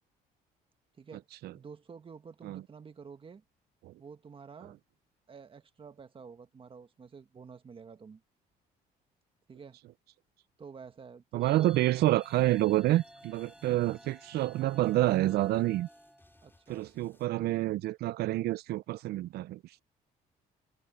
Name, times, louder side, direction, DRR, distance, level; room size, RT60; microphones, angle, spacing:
voice 1, 1.0-1.3 1.5-3.4 4.0-4.8 5.3-8.2 9.5-9.8 10.6-11.9 13.6-14.0 16.4-16.9 19.1-19.3, right 6 dB, 30° right, 1.7 m, -50 dB
voice 2, 11.3-15.9 16.7-19.8, right 15 dB, 70° right, 0.5 m, -28 dB
sound 1, 11.4-16.8, equal, 5° right, 7.9 m, -55 dB
sound 2, 12.2-17.3, left 2 dB, 15° left, 4.8 m, -66 dB
cardioid pair, 110°, 17 cm